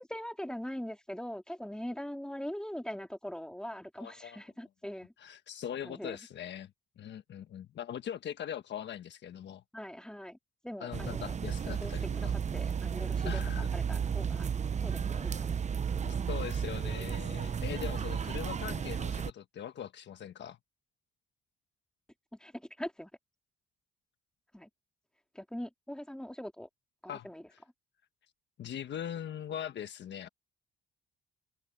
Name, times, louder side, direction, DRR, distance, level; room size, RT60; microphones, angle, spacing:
voice 1, 0.0-5.1 5.8-6.2 9.7-10.4 10.6-11.3 11.6-14.5 14.8-15.6 22.4-23.1 24.5-24.7 25.3-26.7 27.0-27.5, equal, 5° left, 2.6 m, -42 dB
voice 2, 4.0-4.4 5.2-9.6 10.8-12.3 13.2-13.7 16.0-20.6 27.1-27.3 28.6-30.3, left 9 dB, 65° left, 1.4 m, -41 dB
sound 1, 10.9-19.3, right 7 dB, 35° right, 0.8 m, -33 dB
cardioid pair, 90°, 20 cm